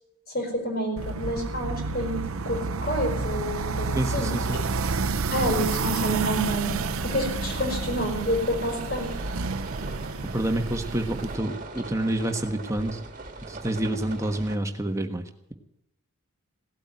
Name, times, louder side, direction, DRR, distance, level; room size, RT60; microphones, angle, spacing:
voice 1, 0.3-4.3 5.3-6.7 7.0-9.1, equal, 45° left, 2 dB, 4.8 m, -28 dB
sound 1, 1.0-11.3, right 3 dB, 70° right, 0.8 m, -30 dB
voice 2, 3.9-4.4 10.3-13.0 13.5-15.2, right 1 dB, 15° right, 5 dB, 1.3 m, -28 dB
sound 2, 5.9-14.6, right 3 dB, 35° right, 1.8 m, -41 dB
17.5 x 8.4 x 9.6 m, 0.82 s
head